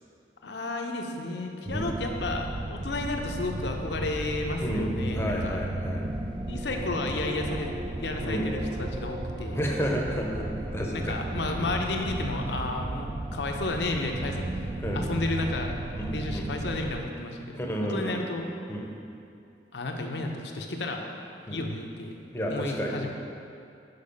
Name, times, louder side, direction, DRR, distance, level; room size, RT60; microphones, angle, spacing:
voice 1, 0.4-5.6 6.5-9.6 10.9-14.7 14.9-15.8 16.1-18.4 19.7-21.0 21.5-22.1 22.5-23.1, left 2 dB, 75° left, 3 dB, 0.7 m, -32 dB
voice 2, 1.6-2.0 4.6-4.9 5.1-6.1 8.2-8.5 9.5-11.2 11.5-11.6 14.8-15.0 15.9-16.5 17.5-18.2 18.7-18.9 21.5-21.6 22.3-23.1, equal, 15° left, -1 dB, 0.7 m, -31 dB
sound 1, 1.7-17.0, right 1 dB, 25° right, 0.3 m, -34 dB
6.8 x 4.8 x 5.3 m, 2.5 s
head